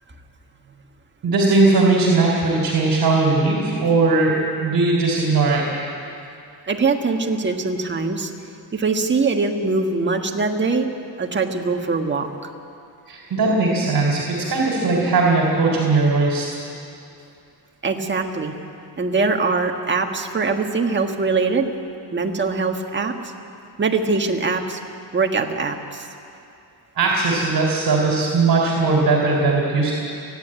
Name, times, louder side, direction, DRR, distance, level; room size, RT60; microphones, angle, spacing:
voice 1, 1.2-5.6 13.1-16.6 27.0-29.9, right 3 dB, 55° right, -2 dB, 3.6 m, -19 dB
voice 2, 6.7-8.3 8.7-10.9 11.2-12.3 17.8-18.5 19.0-21.7 22.1-23.3 23.8-24.8 25.1-26.1, right 4 dB, 25° right, 3 dB, 1.5 m, -22 dB
29.5 x 10.5 x 8.9 m, 2.6 s
cardioid pair, 135°, 42 cm